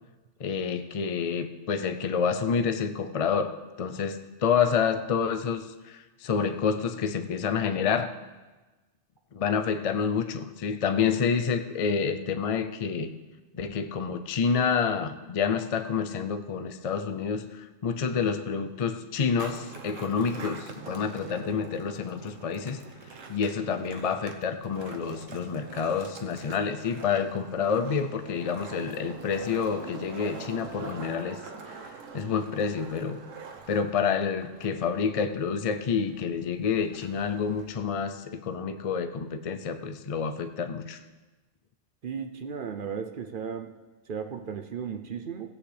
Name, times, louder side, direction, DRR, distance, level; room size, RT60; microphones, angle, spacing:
voice 1, 0.4-8.1 9.3-13.1 13.5-22.8 23.3-31.4 31.7-31.8 32.1-33.2 33.7-41.0, left 6 dB, 55° left, 8 dB, 0.4 m, -28 dB
Skateboard, 19.2-37.9, right 5 dB, 90° right, 1.3 m, -45 dB
voice 2, 42.0-43.7 44.1-45.5, right 7 dB, 50° right, 6 dB, 0.7 m, -35 dB
16.5 x 8.3 x 3.3 m, 1.2 s
omnidirectional pair, 1.3 m